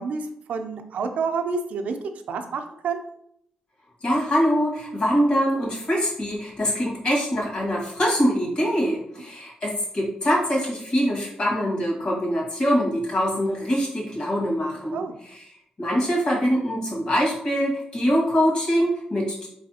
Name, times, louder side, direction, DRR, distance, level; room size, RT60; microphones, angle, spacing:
voice 1, 0.0-2.0 2.3-3.0 14.9-15.1, right 5 dB, 70° right, 5 dB, 0.5 m, -28 dB
voice 2, 4.0-15.4 15.8-19.5, equal, 40° left, -4 dB, 1.6 m, -23 dB
4.6 x 3.3 x 2.8 m, 0.73 s
wide cardioid pair, 150°, 3 cm